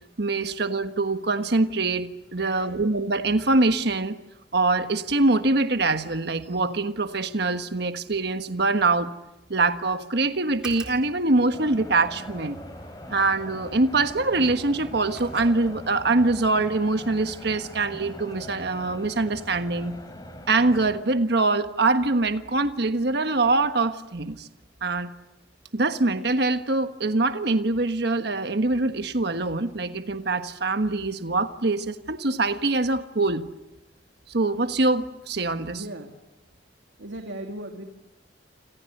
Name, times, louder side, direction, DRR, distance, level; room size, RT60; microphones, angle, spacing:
voice 1, 0.2-4.2 4.5-9.1 9.5-12.6 13.1-20.0 20.5-24.5 24.8-25.1 25.7-33.5 34.3-35.8, right 3 dB, 60° right, 9 dB, 1.4 m, -24 dB
voice 2, 2.4-2.8 35.7-36.2 37.0-37.8, right 1 dB, 90° right, 3 dB, 2.7 m, -38 dB
sound 1, 10.5-16.1, right 1 dB, 5° right, 3.9 m, -47 dB
sound 2, 11.5-21.0, left 1 dB, 20° left, 4.0 m, -42 dB
29.0 x 27.0 x 6.7 m, 0.97 s
head